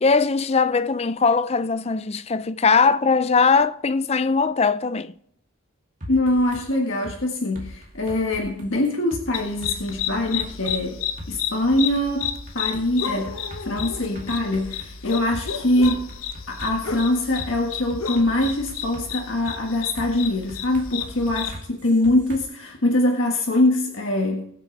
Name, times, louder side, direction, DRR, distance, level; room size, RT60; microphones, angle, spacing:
voice 1, 0.0-5.1, left 4 dB, 30° left, 0.5 m, -20 dB
sound 1, 6.0-6.6 7.0-7.2 7.5-9.2 9.6-10.8 11.2-11.3 11.7-14.9 15.3-15.4 15.8-17.5 17.9-19.1 19.5-19.6 20.0-22.4, equal, 35° right, 2.4 m, -40 dB
voice 2, 6.1-11.0 11.3-13.3 13.6-16.1 16.5-24.4, left 1 dB, 65° left, 1.7 m, -23 dB
sound 2, 9.3-21.6, left 8 dB, 85° left, 1.0 m, -32 dB
21.5 x 7.7 x 3.3 m
head